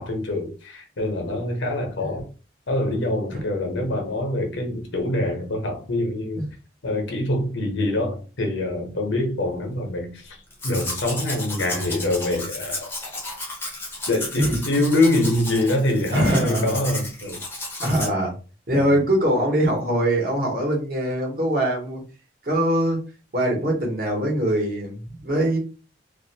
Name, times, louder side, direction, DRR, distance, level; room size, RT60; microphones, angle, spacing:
voice 1, 0.0-2.2 2.7-6.4 6.8-10.4 10.6-12.8 14.1-17.4 18.0-18.2 18.7-19.0, left 1 dB, 90° left, 3 dB, 0.8 m, -25 dB
Domestic sounds home sounds, 10.5-18.1, left 2 dB, 10° left, 0.5 m, -33 dB
voice 2, 16.1-16.8 17.8-18.3 18.7-22.0 22.4-23.0 23.3-25.6, right 1 dB, 50° right, -1 dB, 1.0 m, -22 dB
2.5 x 2.1 x 2.7 m, 0.34 s
head